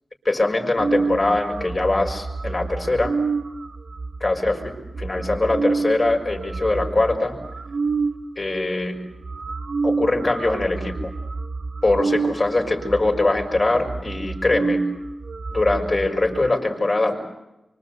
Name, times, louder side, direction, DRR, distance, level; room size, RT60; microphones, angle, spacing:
voice 1, 0.2-3.1 4.2-7.3 8.4-9.0 9.8-11.1 11.8-14.8 15.5-17.2, left 2 dB, 45° left, 3 dB, 6.0 m, -22 dB
sound 1, 0.8-8.2 8.8-8.9 9.1-16.5, right 4 dB, 75° right, 2.0 m, -28 dB
26.0 x 25.0 x 8.2 m, 0.95 s
cardioid pair, 45°, 0 cm